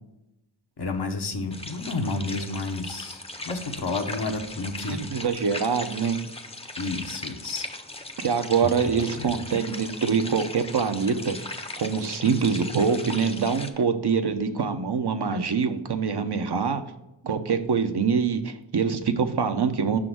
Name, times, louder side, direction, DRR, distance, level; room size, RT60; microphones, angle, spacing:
voice 1, 0.8-5.0 6.8-7.7 8.8-9.4, left 3 dB, 65° left, 5 dB, 0.9 m, -31 dB
sound 1, 1.5-13.7, left 2 dB, 15° left, 0.6 m, -38 dB
voice 2, 4.9-6.2 8.2-11.3 11.8-16.8 17.2-20.0, right 6 dB, 65° right, 7 dB, 0.7 m, -24 dB
6.0 x 3.8 x 6.0 m, 0.89 s
wide cardioid pair, 45°, 43 cm